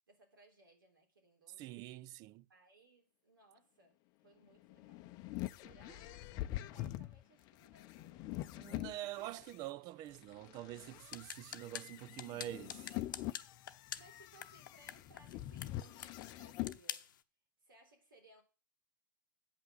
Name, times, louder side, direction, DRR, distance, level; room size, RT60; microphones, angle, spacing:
voice 1, 0.1-1.8 2.5-5.1 5.6-9.3 14.0-17.1 17.6-18.4, right 2 dB, 80° right, 3.4 m, -65 dB
voice 2, 1.6-2.4 5.6-5.7 8.6-13.0, right 14 dB, 35° right, 0.4 m, -46 dB
sound 1, 4.5-9.6 10.1-16.8, left 15 dB, 40° left, 0.6 m, -45 dB
sound 2, 10.8-17.2, left 9 dB, 70° left, 0.8 m, -49 dB
8.4 x 5.7 x 7.7 m
hypercardioid pair, 105°, 11 cm